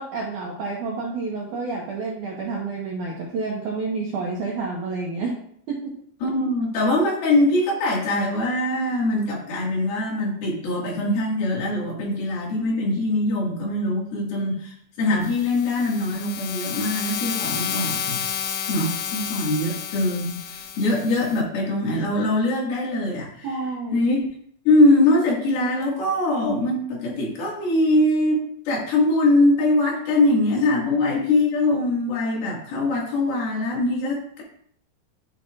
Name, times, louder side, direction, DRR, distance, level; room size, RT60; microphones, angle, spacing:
voice 1, 0.0-5.3 5.7-5.9 17.4-17.5 23.4-24.0, right 4 dB, 65° right, -3 dB, 2.0 m, -29 dB
voice 2, 6.2-18.2 18.7-23.6 23.9-24.2 24.7-34.4, left 2 dB, 60° left, -3 dB, 3.7 m, -22 dB
sound 1, 15.2-21.4, left 8 dB, 85° left, 3.3 m, -31 dB
12.5 x 5.7 x 2.5 m, 0.64 s
omnidirectional pair, 5.3 m